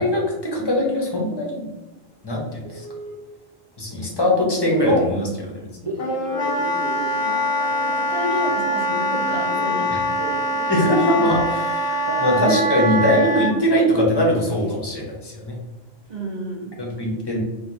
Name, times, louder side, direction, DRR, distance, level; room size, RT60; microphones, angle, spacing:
voice 1, 0.0-1.7 2.2-2.8 3.8-5.7 9.9-10.0 10.7-15.6 16.8-17.4, equal, 25° left, -2 dB, 0.8 m, -21 dB
Telephone, 2.6-3.2 3.7-4.0 4.3-5.2 5.7-11.2 11.5-12.6 12.9-13.3 13.6-13.7 14.0-14.6, right 1 dB, 30° right, 0.5 m, -33 dB
Wind instrument woodwind instrument, 6.0-13.6, equal, 90° left, 1.1 m, -23 dB
voice 2, 7.2-10.4 16.1-16.8, right 1 dB, 45° right, -4 dB, 1.1 m, -31 dB
4.5 x 2.4 x 2.7 m, 1.1 s
omnidirectional pair, 1.1 m